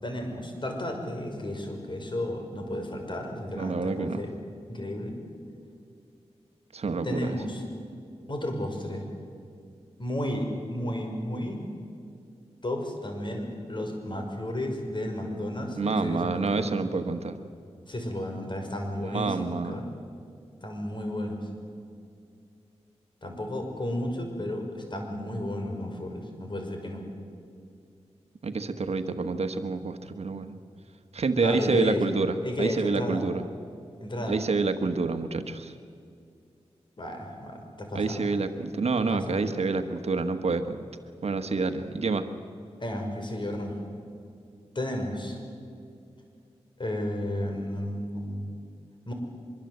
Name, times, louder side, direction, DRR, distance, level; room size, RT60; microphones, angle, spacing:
voice 1, 0.0-4.3 4.7-5.2 7.0-7.6 8.3-9.1 10.0-11.6 12.6-16.7 17.9-19.9 20.6-21.5 23.2-27.0 31.4-32.0 32.4-33.3 34.0-34.4 37.0-38.3 39.1-39.4 42.8-43.8 44.8-45.4 46.8-48.5 49.1-49.2, left 1 dB, 45° left, 3 dB, 5.6 m, -33 dB
voice 2, 3.5-4.2 6.7-7.3 15.8-17.4 19.1-19.8 28.4-30.5 31.1-33.4 34.3-35.7 37.9-40.8 41.2-42.3, right 4 dB, 65° right, 8 dB, 1.4 m, -28 dB
24.5 x 22.5 x 8.0 m, 2.4 s
cardioid pair, 50°, 11 cm